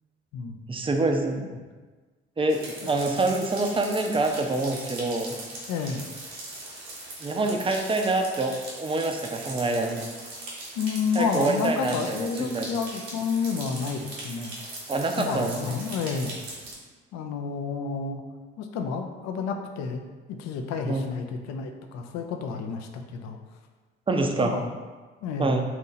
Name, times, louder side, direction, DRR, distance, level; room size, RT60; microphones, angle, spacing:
voice 1, 0.7-1.5 2.4-5.4 7.2-10.0 11.1-12.7 14.9-15.7 20.8-21.0 24.1-24.5 25.4-25.6, right 2 dB, 15° right, 3 dB, 0.5 m, -26 dB
sound 1, 2.5-16.7, right 2 dB, 85° right, 0.9 m, -40 dB
voice 2, 5.7-6.0 10.8-14.6 15.2-16.4 17.1-18.2 18.6-20.0 20.3-23.4 24.4-24.7 25.2-25.6, left 5 dB, 55° left, 5 dB, 0.5 m, -30 dB
2.9 x 2.6 x 4.0 m, 1.3 s
hypercardioid pair, 50°, 32 cm